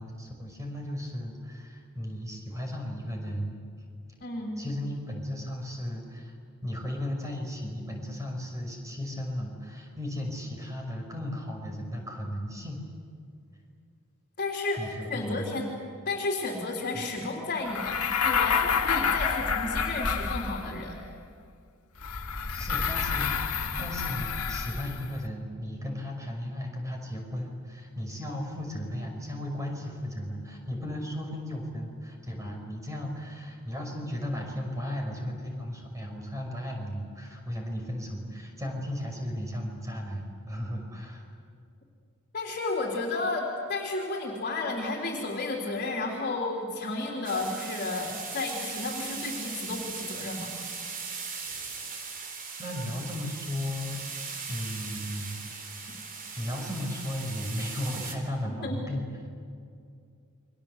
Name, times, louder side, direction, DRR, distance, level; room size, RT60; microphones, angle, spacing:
voice 1, 0.0-3.5 4.6-6.4 6.6-12.8 14.8-15.5 16.9-17.0 22.5-41.2 52.6-54.0 54.5-55.5 56.4-59.1, left 1 dB, 15° right, 1 dB, 5.8 m, -35 dB
voice 2, 4.2-4.6 14.4-15.7 16.1-21.0 42.3-50.5 55.9-56.0 58.5-58.8, left 2 dB, 40° left, -1 dB, 3.5 m, -32 dB
sound 1, 17.7-20.9 22.0-25.1, left 6 dB, 85° left, 1.9 m, -28 dB
sound 2, 47.2-58.1, right 5 dB, 40° right, 3.6 m, -39 dB
29.5 x 23.5 x 8.1 m, 2.4 s
head